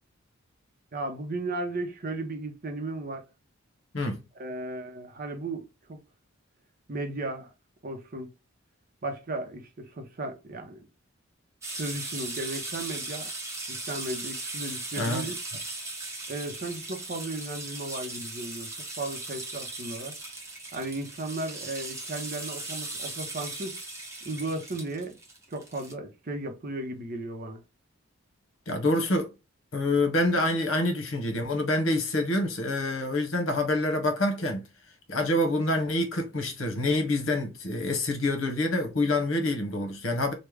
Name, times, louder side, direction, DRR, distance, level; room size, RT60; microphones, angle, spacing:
voice 1, 0.9-3.3 4.3-6.0 6.9-7.5 7.8-8.3 9.0-10.9 11.7-13.3 13.7-15.4 16.3-18.7 19.0-20.1 20.7-23.8 24.2-25.2 25.5-27.6, right 2 dB, 45° right, 0.7 m, -35 dB
sound 1, 11.6-25.9, right 2 dB, 15° right, 0.9 m, -38 dB
voice 2, 28.7-29.3 29.7-34.6 35.1-40.3, left 1 dB, 70° left, 1.1 m, -26 dB
3.2 x 2.2 x 3.4 m
head